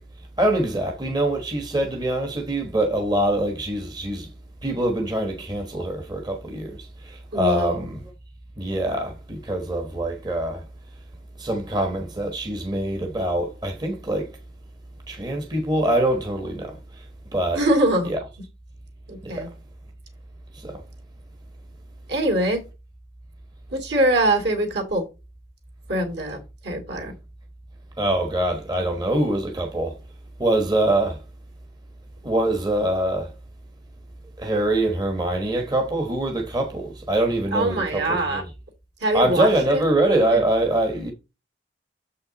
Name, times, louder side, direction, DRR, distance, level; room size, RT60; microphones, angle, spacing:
voice 1, 0.4-4.3 4.6-7.9 8.6-10.6 11.4-14.3 15.1-17.1 17.3-17.6 18.1-18.2 19.2-19.5 20.5-20.8 28.0-30.0 30.4-31.2 32.2-33.3 34.4-38.4 39.1-41.1, right 1 dB, 20° right, 1.1 m, -24 dB
voice 2, 7.3-7.9 17.5-18.1 19.1-19.5 22.1-22.6 23.7-25.0 25.9-27.1 37.5-38.4 39.0-39.8 40.3-40.4, right 1 dB, 60° right, 2.5 m, -23 dB
7.2 x 5.6 x 4.0 m
head